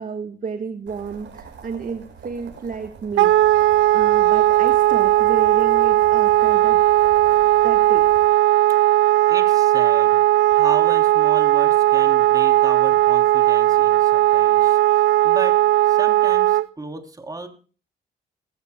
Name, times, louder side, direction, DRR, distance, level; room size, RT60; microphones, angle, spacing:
voice 1, 0.0-6.8 7.6-8.1, right 5 dB, 45° right, 5 dB, 1.5 m, -31 dB
sound 1, 0.9-8.3, right 6 dB, 65° right, 6.1 m, -43 dB
Wind instrument woodwind instrument, 3.2-16.7, right 15 dB, 85° right, 0.5 m, -17 dB
voice 2, 9.3-10.2 10.5-15.6 15.8-17.5, right 2 dB, 20° right, 4 dB, 3.1 m, -34 dB
22.0 x 15.5 x 2.3 m, 0.38 s
cardioid pair, 90°, 20 cm